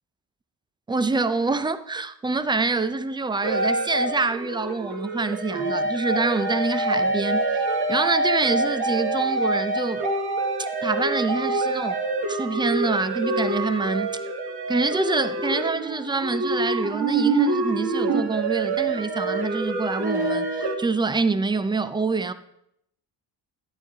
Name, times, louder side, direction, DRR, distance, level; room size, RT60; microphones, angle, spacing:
voice 1, 0.9-7.6 7.9-10.0 10.8-12.0 12.3-14.2 14.7-22.3, right 3 dB, 10° right, 0.4 m, -26 dB
sound 1, 3.4-20.8, right 2 dB, 65° right, 1.7 m, -26 dB
12.0 x 9.5 x 3.6 m
cardioid pair, 120°, 42 cm